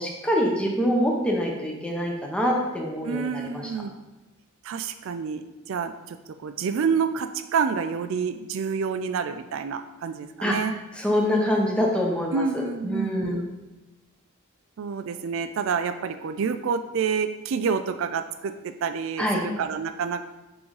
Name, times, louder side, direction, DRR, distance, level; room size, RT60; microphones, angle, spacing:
voice 1, 0.0-3.6 10.4-10.6 11.0-13.4 19.2-19.4, equal, 5° left, -1 dB, 0.9 m, -25 dB
voice 2, 3.0-3.9 4.6-10.8 12.3-13.4 14.8-20.3, right 6 dB, 65° right, 9 dB, 0.4 m, -28 dB
6.0 x 3.9 x 4.7 m, 1.1 s
head